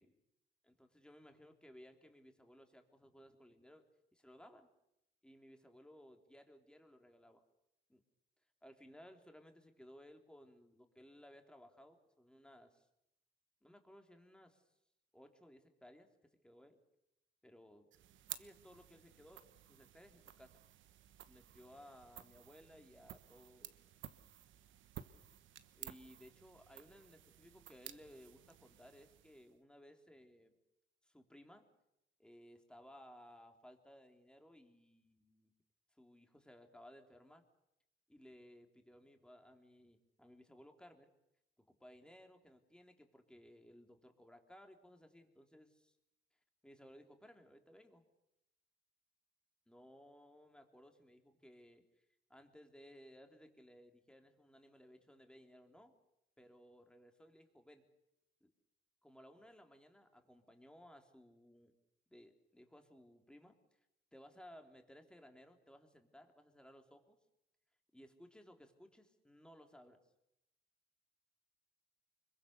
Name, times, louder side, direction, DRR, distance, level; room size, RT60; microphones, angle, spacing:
voice 1, 0.7-3.8 4.1-4.7 5.2-7.4 7.9-8.0 8.6-12.9 13.6-14.6 15.1-16.8 17.4-17.9 18.4-20.5 21.3-23.7 25.7-30.5 31.0-31.7 32.2-35.5 36.0-37.4 38.1-41.1 41.6-45.9 46.6-48.0 49.7-51.8 52.3-55.9 56.4-57.8 58.4-58.5 59.0-61.7 62.1-63.5 64.1-67.2 67.9-70.0, equal, 5° left, 5 dB, 3.3 m, -60 dB
sound 1, 17.9-29.6, right 11 dB, 75° right, 1.2 m, -55 dB
25.0 x 23.0 x 6.7 m, 0.84 s
cardioid pair, 90°, 20 cm